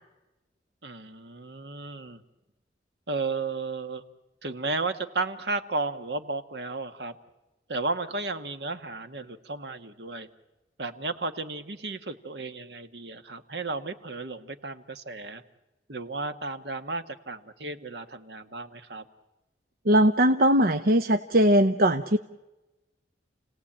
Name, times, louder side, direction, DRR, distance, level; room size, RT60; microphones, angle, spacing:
voice 1, 0.8-2.2 3.1-4.0 4.4-7.2 7.7-10.3 10.8-15.4 15.9-19.0, right 3 dB, 70° right, 9 dB, 1.5 m, -33 dB
voice 2, 19.9-22.2, right 1 dB, 55° right, 9 dB, 0.8 m, -20 dB
29.5 x 18.0 x 8.8 m, 1.1 s
head